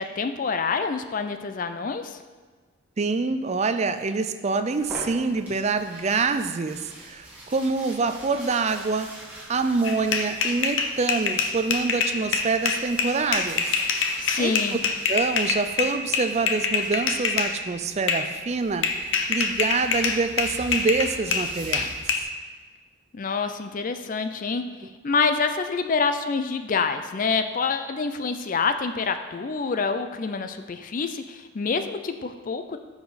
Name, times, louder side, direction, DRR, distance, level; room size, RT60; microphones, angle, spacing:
voice 1, 0.0-2.2 14.2-14.8 23.1-24.6 25.0-32.8, left 4 dB, 40° left, 8 dB, 0.4 m, -27 dB
voice 2, 3.0-9.1 9.5-13.7 14.1-14.6 15.1-21.9, right 4 dB, 30° right, 10 dB, 0.4 m, -26 dB
sound 1, 4.7-17.5 18.5-22.0, right 1 dB, 5° right, 2.1 m, -44 dB
sound 2, 9.8-17.5 18.1-18.3 18.8-22.2, left 5 dB, 60° left, 0.8 m, -25 dB
13.0 x 4.9 x 4.1 m, 1.4 s
head